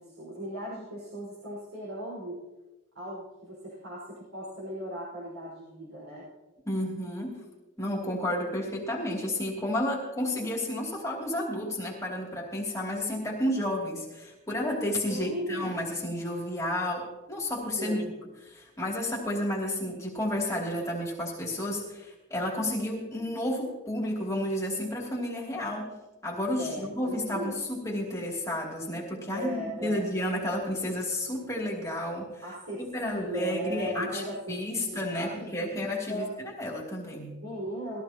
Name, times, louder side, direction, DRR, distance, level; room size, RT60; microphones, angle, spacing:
voice 1, 0.0-2.4 2.9-6.3 15.1-15.7 17.8-18.1 26.6-27.6 29.3-30.1 32.4-36.3 37.4-38.0, equal, 80° right, -7 dB, 5.1 m, -37 dB
voice 2, 6.7-7.4 7.8-18.0 18.5-25.9 26.2-32.4 32.9-37.4, left 1 dB, 15° left, -3 dB, 2.8 m, -31 dB
20.5 x 15.0 x 3.0 m, 1.1 s
head